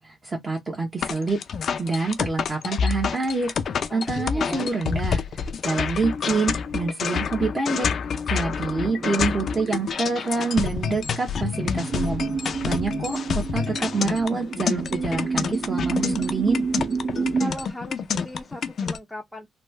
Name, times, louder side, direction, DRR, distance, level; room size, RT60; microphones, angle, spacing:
voice 1, 0.0-1.4 1.8-3.5 3.9-5.2 5.6-7.9 8.2-12.2 12.6-16.6, right 3 dB, 30° right, 0.9 m, -26 dB
sound 1, 1.0-19.0, left 6 dB, 55° left, 0.4 m, -28 dB
voice 2, 3.9-4.7 17.4-19.5, equal, 5° left, 0.6 m, -38 dB
sound 2, 8.6-17.5, right 5 dB, 45° right, 0.5 m, -30 dB
3.1 x 2.1 x 3.1 m
cardioid pair, 90°, 0 cm